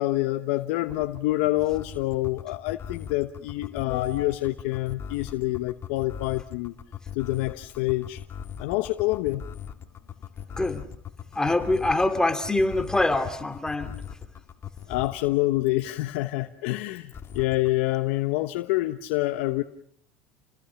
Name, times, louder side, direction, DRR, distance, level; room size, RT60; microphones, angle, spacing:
voice 1, 0.0-6.7 7.1-8.2 8.6-9.4 14.9-19.6, left 18 dB, 80° left, 8 dB, 1.1 m, -27 dB
sound 1, 0.9-15.3 17.1-17.7, left 8 dB, 40° left, 2.4 m, -39 dB
voice 2, 11.4-13.9, left 2 dB, 10° left, 8 dB, 2.5 m, -24 dB
29.5 x 20.0 x 7.2 m, 0.68 s
supercardioid pair, 90°, 7 cm